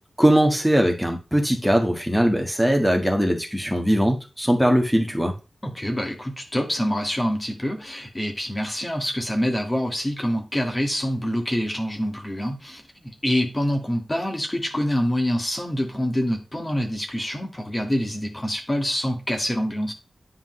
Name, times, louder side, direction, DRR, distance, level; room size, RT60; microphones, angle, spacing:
voice 1, 0.2-5.3, equal, ahead, 3 dB, 1.6 m, -20 dB
voice 2, 5.6-19.9, equal, 15° left, 3 dB, 1.8 m, -26 dB
9.7 x 5.2 x 3.2 m, 0.30 s
wide cardioid pair, 130°, 0 cm